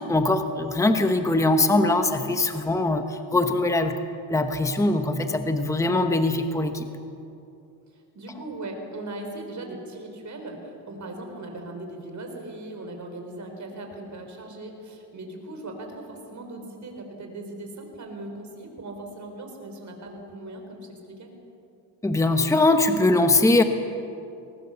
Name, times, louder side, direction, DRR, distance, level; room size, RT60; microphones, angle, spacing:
voice 1, 0.0-4.0 4.3-6.9 22.0-23.6, left 2 dB, 5° left, 7 dB, 1.1 m, -22 dB
voice 2, 7.9-21.3, right 2 dB, 40° right, 3 dB, 4.4 m, -39 dB
22.0 x 19.0 x 7.1 m, 2.6 s
cardioid pair, 120°, 45 cm